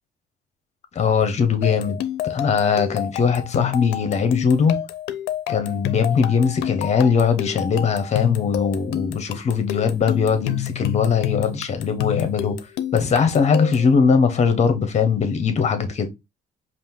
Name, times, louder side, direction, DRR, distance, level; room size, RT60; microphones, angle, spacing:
voice 1, 0.9-2.0 2.2-4.8 5.5-12.6 12.9-16.1, left 6 dB, 40° left, 1.1 m, -20 dB
sound 1, 1.6-13.9, left 12 dB, 85° left, 0.6 m, -29 dB
5.1 x 2.6 x 3.7 m
cardioid pair, 110°, 17 cm